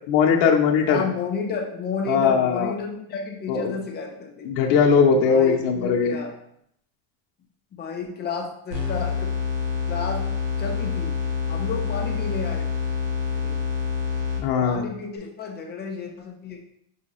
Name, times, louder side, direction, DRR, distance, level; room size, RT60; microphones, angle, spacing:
voice 1, 0.1-1.0 2.1-2.7 3.5-3.7 4.4-6.2 14.4-14.8, left 6 dB, 80° left, 1 dB, 0.8 m, -19 dB
voice 2, 0.9-4.5 5.1-6.3 7.8-9.3 9.9-10.3 10.6-11.2 11.5-12.7 13.3-13.6 14.6-16.6, left 5 dB, 20° left, 1 dB, 0.6 m, -32 dB
sound 1, 8.7-14.8, left 6 dB, 60° right, 1.2 m, -27 dB
5.7 x 2.8 x 3.0 m, 0.72 s
cardioid pair, 150°, 47 cm